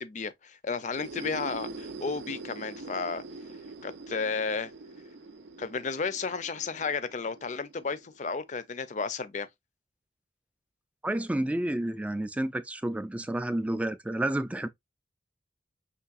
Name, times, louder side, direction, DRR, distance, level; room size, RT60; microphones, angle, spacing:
voice 1, 0.0-3.2 3.8-4.7 5.6-9.5, left 5 dB, 45° left, 0.5 m, -33 dB
sound 1, 0.8-8.5, right 3 dB, 85° right, 0.7 m, -44 dB
voice 2, 11.0-14.7, right 1 dB, 10° right, 0.3 m, -30 dB
5.7 x 3.2 x 2.4 m
head